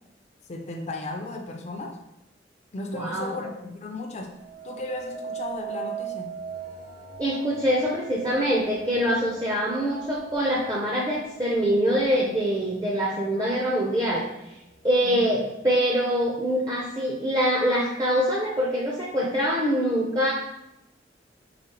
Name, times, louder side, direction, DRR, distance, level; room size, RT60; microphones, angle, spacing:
voice 1, 0.5-2.0 2.7-4.3 4.6-6.3 15.0-15.3, left 2 dB, 35° left, 2 dB, 0.4 m, -35 dB
voice 2, 2.9-3.4 7.2-14.2 14.8-20.3, equal, 20° right, -4 dB, 0.6 m, -24 dB
sound 1, 4.3-13.5 14.0-14.5, right 7 dB, 55° right, 1.2 m, -40 dB
4.9 x 3.6 x 2.9 m, 0.87 s
head